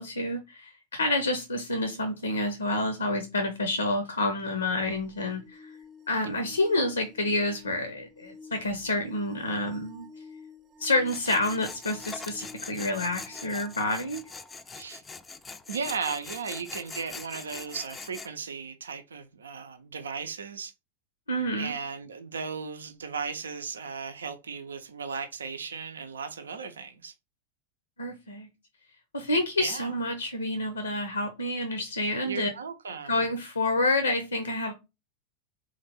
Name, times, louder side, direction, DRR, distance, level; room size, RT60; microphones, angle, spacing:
voice 1, 0.0-5.7 6.1-10.1 10.8-14.2 21.3-21.7 28.0-28.5 29.1-32.5 33.1-34.7, left 2 dB, 75° left, 0.7 m, -28 dB
sound 1, 4.8-14.6 16.9-17.0, left 3 dB, 30° right, 0.8 m, -50 dB
Tools, 11.1-18.3, left 4 dB, 15° left, 0.4 m, -42 dB
voice 2, 15.7-20.7 21.5-27.1 29.6-29.9 32.2-33.2, right 5 dB, 70° right, 0.5 m, -36 dB
3.9 x 3.3 x 3.9 m
figure-of-eight pair, 90°, 0 cm